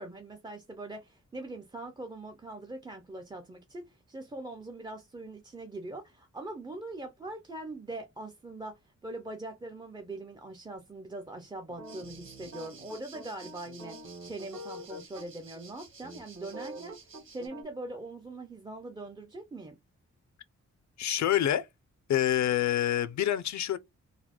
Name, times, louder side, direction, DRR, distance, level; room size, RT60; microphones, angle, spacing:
voice 1, 0.0-14.0 14.2-19.8, right 2 dB, 15° right, 0.4 m, -42 dB
sound 1, 11.7-15.3 15.5-15.7 16.0-17.6, right 1 dB, 70° right, 1.3 m, -45 dB
sound 2, 11.8-17.5, right 5 dB, 45° right, 1.1 m, -53 dB
voice 2, 21.0-21.7 22.1-23.8, left 11 dB, 70° left, 0.5 m, -27 dB
4.0 x 2.2 x 2.8 m
wide cardioid pair, 145°, 29 cm